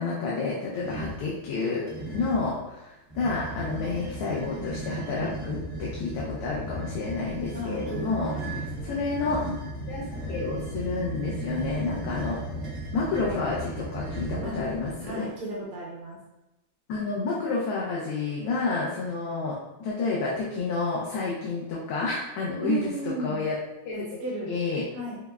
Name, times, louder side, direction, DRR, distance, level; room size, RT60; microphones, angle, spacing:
voice 1, 0.0-1.9 2.1-9.5 9.9-12.4 12.9-15.2 16.9-22.9 23.2-23.5 23.8-24.0 24.5-24.8, left 4 dB, 90° left, -4 dB, 1.6 m, -30 dB
sound 1, 0.7-1.3 1.9-2.5 3.1-15.1, right 1 dB, 45° right, 0.8 m, -36 dB
voice 2, 7.5-8.9 14.4-14.6 15.0-16.2 22.6-23.4 23.9-24.6 24.9-25.2, right 2 dB, 85° right, -5 dB, 1.7 m, -34 dB
5.6 x 2.0 x 2.2 m, 0.95 s
omnidirectional pair, 2.4 m